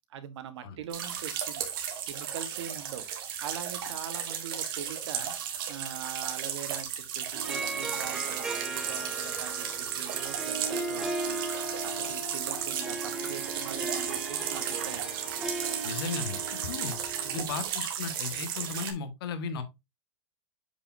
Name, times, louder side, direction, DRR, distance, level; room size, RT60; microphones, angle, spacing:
voice 1, 0.1-3.0 3.4-5.3 5.7-11.4 11.8-15.1 17.2-17.5, right 9 dB, 65° right, 1.4 m, -42 dB
sound 1, 0.9-18.9, right 8 dB, 45° right, 1.9 m, -34 dB
Harp, 7.3-17.7, right 2 dB, 5° right, 0.6 m, -37 dB
voice 2, 15.8-17.0 17.3-19.6, left 5 dB, 50° left, 1.7 m, -35 dB
8.5 x 5.4 x 2.7 m
supercardioid pair, 170°, 16 cm